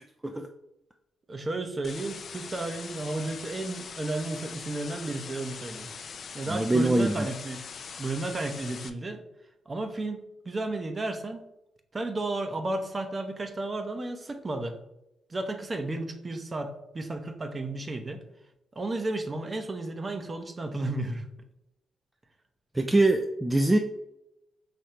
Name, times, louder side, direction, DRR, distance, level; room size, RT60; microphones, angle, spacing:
voice 1, 1.3-5.9 6.3-7.6 8.0-9.2 9.7-11.4 11.9-14.8 15.3-18.2 18.7-21.2, right 2 dB, 35° right, 0.8 m, -33 dB
sound 1, 1.8-8.9, left 6 dB, 55° left, 0.4 m, -42 dB
voice 2, 6.5-7.3 22.7-23.8, right 2 dB, 15° right, 0.4 m, -23 dB
5.1 x 3.1 x 2.9 m
supercardioid pair, 50°, 0 cm